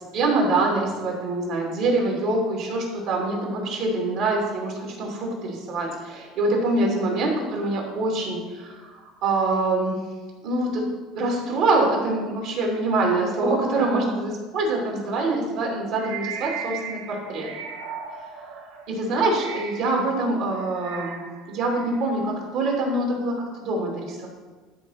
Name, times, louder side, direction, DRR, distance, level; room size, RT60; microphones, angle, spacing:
voice 1, 0.1-10.0 10.4-10.8 11.1-17.5 18.6-21.2 21.5-24.3, right 2 dB, 60° right, -2 dB, 3.1 m, -25 dB
sound 1, 15.6-20.1 20.5-22.1, right 7 dB, 85° right, 1.3 m, -37 dB
12.5 x 4.1 x 6.0 m, 1.4 s
supercardioid pair, 130°, 0 cm